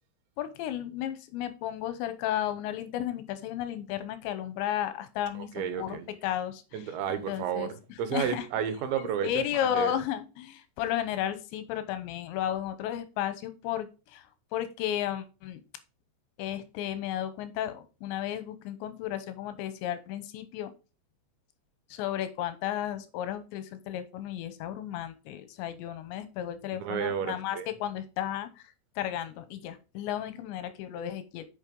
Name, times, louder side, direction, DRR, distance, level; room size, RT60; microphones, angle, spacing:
voice 1, 0.4-6.8 7.3-7.7 8.1-8.5 9.0-14.3 14.5-15.6 16.4-20.7 21.9-31.5, left 11 dB, 85° left, 3.1 m, -33 dB
voice 2, 5.4-6.1 6.7-9.9 26.8-27.7, right 8 dB, 90° right, 3.5 m, -32 dB
8.8 x 5.7 x 3.8 m
omnidirectional pair, 5.1 m